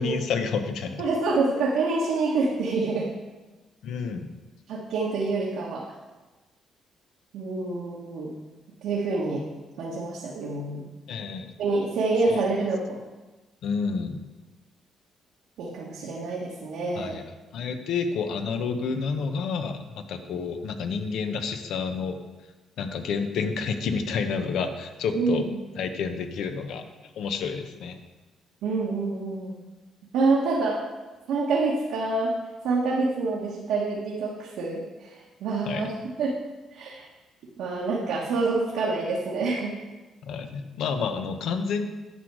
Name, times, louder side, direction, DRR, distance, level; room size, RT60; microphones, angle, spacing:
voice 1, 0.0-1.0 3.8-4.3 11.1-11.5 12.3-12.5 13.6-14.2 17.0-17.2 17.5-22.2 22.8-25.5 25.8-26.8 27.2-28.0 35.7-35.9 40.2-41.9, left 5 dB, 80° left, 7 dB, 0.9 m, -29 dB
voice 2, 1.0-3.1 4.7-5.8 7.3-8.3 8.8-9.4 9.8-10.9 11.6-13.0 15.6-17.2 25.1-25.6 28.6-29.5 30.1-30.8 31.3-32.3 32.6-35.9 36.2-36.3 36.7-37.1 37.6-39.7, right 3 dB, 85° right, -4 dB, 1.4 m, -27 dB
10.0 x 6.4 x 4.8 m, 1.2 s
cardioid pair, 90°, 0 cm